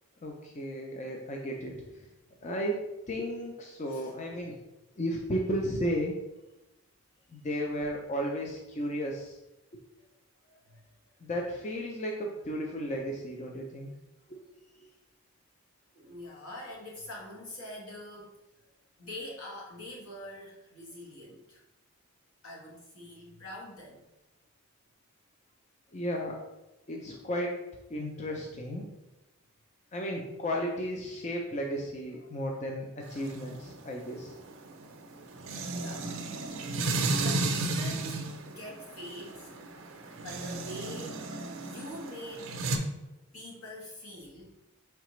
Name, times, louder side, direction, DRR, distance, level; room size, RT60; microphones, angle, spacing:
voice 1, 0.2-2.1 2.4-4.6 5.0-6.1 7.3-9.4 11.2-13.9 14.3-14.4 14.8-14.9 25.9-26.4 26.9-27.6 27.9-28.9 29.9-34.4, equal, 30° left, 0 dB, 0.4 m, -34 dB
voice 2, 10.4-10.9 16.0-18.3 19.0-21.6 22.4-24.0 35.7-36.2 36.6-42.6 43.3-44.5, left 1 dB, 75° left, -2 dB, 1.2 m, -45 dB
sound 1, 33.0-42.8, right 2 dB, 65° right, 0.5 m, -34 dB
4.8 x 3.3 x 3.0 m, 0.97 s
head